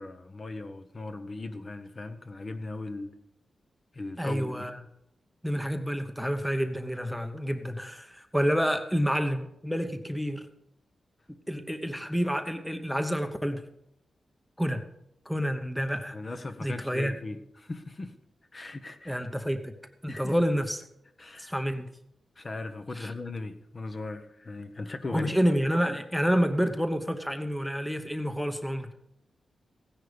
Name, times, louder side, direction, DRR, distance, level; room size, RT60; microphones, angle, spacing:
voice 1, 0.0-3.2 3.9-4.7 16.1-18.2 18.5-19.2 20.1-20.3 21.2-21.5 22.4-25.3, left 2 dB, 35° left, 8 dB, 1.1 m, -38 dB
voice 2, 4.2-4.8 5.4-10.5 11.5-13.6 14.6-14.8 15.3-16.2 16.6-17.1 19.1-19.7 20.0-20.8 21.4-21.9 22.9-23.1 25.1-28.9, equal, ahead, 8 dB, 0.9 m, -28 dB
16.0 x 10.5 x 5.1 m, 0.82 s
wide cardioid pair, 115°, 0 cm